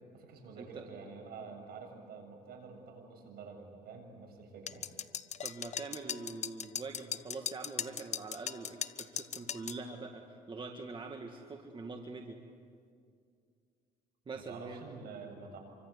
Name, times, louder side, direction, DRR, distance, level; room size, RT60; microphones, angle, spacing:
voice 1, 0.1-4.9 14.3-15.6, right 4 dB, 65° right, 3 dB, 7.1 m, -48 dB
sound 1, 4.7-9.8, left 8 dB, 45° left, 0.9 m, -38 dB
voice 2, 5.4-12.4 14.3-14.8, right 3 dB, 30° right, 3 dB, 1.9 m, -44 dB
27.0 x 24.5 x 8.3 m, 2.2 s
cardioid pair, 110°, 17 cm